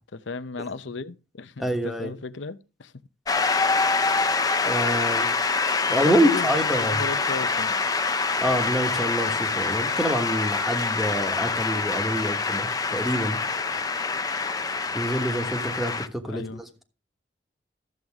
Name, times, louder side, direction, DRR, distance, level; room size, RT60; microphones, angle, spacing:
voice 1, 0.3-2.9 5.9-6.5 6.8-7.8 16.3-16.6, left 4 dB, 80° left, 0.7 m, -35 dB
voice 2, 1.6-2.2 4.6-5.3 5.9-7.0 8.4-13.4 14.9-16.8, equal, ahead, 1.3 m, -26 dB
Shout / Cheering / Applause, 3.3-16.1, left 4 dB, 20° left, 0.6 m, -25 dB
13.5 x 7.9 x 3.6 m
head